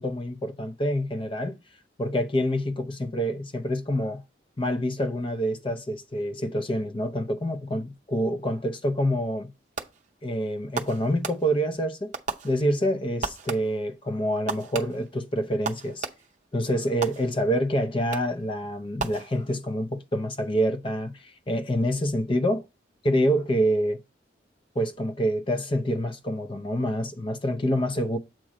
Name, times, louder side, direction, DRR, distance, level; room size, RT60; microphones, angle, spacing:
voice 1, 0.0-1.6 2.0-4.2 4.6-9.5 10.2-12.1 12.4-16.0 16.5-22.6 23.0-24.0 24.8-28.2, equal, 30° left, 0.6 m, -27 dB
Fireworks, 9.8-10.2 10.7-11.7 12.1-12.9 13.2-13.9 14.5-16.5 17.0-17.6 18.1-18.5 19.0-19.7, right 4 dB, 45° right, 0.6 m, -36 dB
7.5 x 3.0 x 4.8 m
head